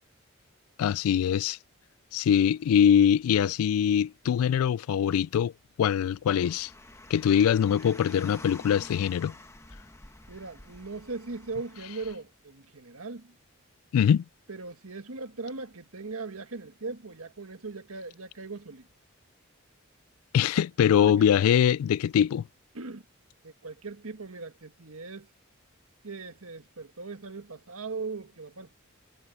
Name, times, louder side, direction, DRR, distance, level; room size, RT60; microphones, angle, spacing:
voice 1, 0.8-1.6 2.1-5.5 5.8-6.7 7.1-9.3 13.9-14.2 20.3-22.4, left 8 dB, 85° left, 0.3 m, -23 dB
Car, 6.3-12.1, left 2 dB, 15° left, 1.2 m, -49 dB
voice 2, 10.3-13.3 14.5-18.9 21.0-21.2 22.7-23.0 23.4-25.3 26.0-28.8, right 3 dB, 80° right, 1.7 m, -39 dB
head